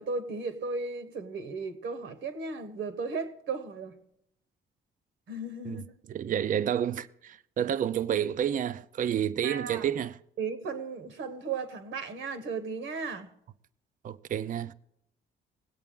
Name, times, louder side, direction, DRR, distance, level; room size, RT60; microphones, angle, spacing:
voice 1, 0.0-3.9 5.3-5.8 9.4-9.9 10.4-13.3, right 4 dB, 75° right, 1.3 m, -35 dB
voice 2, 5.6-10.2 14.0-14.7, right 9 dB, 45° right, 0.4 m, -30 dB
19.5 x 8.2 x 3.8 m
cardioid pair, 90°, 20 cm